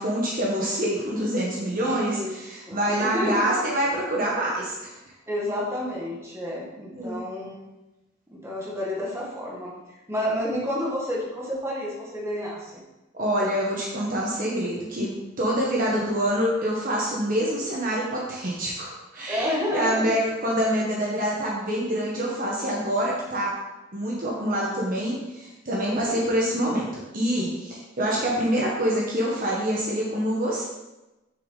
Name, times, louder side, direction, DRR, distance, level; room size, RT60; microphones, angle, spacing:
voice 1, 0.0-5.0 6.9-7.2 13.1-23.5 23.9-26.9 27.1-30.6, equal, 45° right, -4 dB, 1.3 m, -26 dB
voice 2, 1.6-3.5 5.3-7.5 8.3-12.8 19.3-20.2 25.8-26.2, left 1 dB, 15° right, -5 dB, 1.8 m, -30 dB
6.7 x 6.7 x 4.1 m, 1.0 s
head